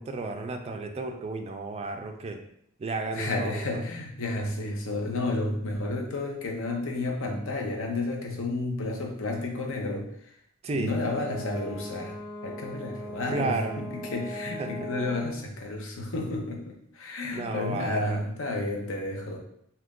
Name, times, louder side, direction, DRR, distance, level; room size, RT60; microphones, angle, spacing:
voice 1, 0.0-2.4 2.8-3.8 10.6-11.0 13.3-13.8 14.6-14.7 17.3-18.2, right 3 dB, 30° right, 5 dB, 0.3 m, -32 dB
voice 2, 3.1-10.4 10.7-12.2 12.4-19.4, left 2 dB, 65° left, 1 dB, 0.7 m, -31 dB
Brass instrument, 10.9-15.4, equal, 40° left, 1.0 m, -39 dB
2.8 x 2.4 x 3.6 m, 0.72 s
head